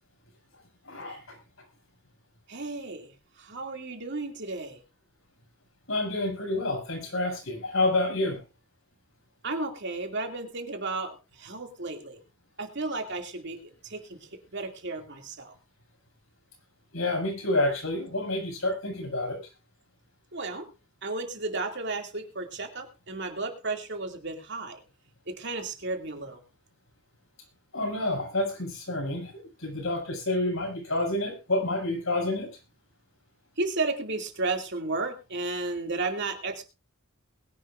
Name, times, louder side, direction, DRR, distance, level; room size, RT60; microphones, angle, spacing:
voice 1, 0.9-1.3 5.9-8.4 16.9-19.4 27.7-29.3 29.6-32.5, left 2 dB, 80° left, 1 dB, 6.8 m, -28 dB
voice 2, 2.5-4.8 9.4-12.2 12.6-13.6 13.8-15.5 20.3-20.7 21.0-24.8 25.3-26.4 33.6-36.6, right 3 dB, 55° right, 4 dB, 2.5 m, -33 dB
21.0 x 11.0 x 2.5 m, 0.27 s
head